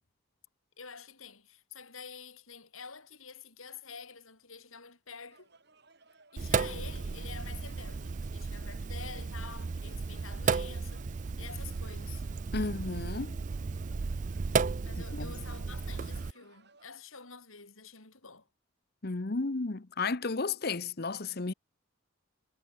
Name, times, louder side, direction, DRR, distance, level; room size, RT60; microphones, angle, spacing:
voice 1, 0.8-5.5 6.3-12.2 14.5-18.5, left 5 dB, 80° left, 5.6 m, -48 dB
sound 1, 5.3-16.9, right 3 dB, 50° right, 6.9 m, -62 dB
Sink (filling or washing), 6.4-16.3, right 4 dB, 35° right, 0.4 m, -34 dB
voice 2, 12.5-13.4 15.1-15.3 19.0-21.5, left 3 dB, 50° left, 0.9 m, -33 dB
head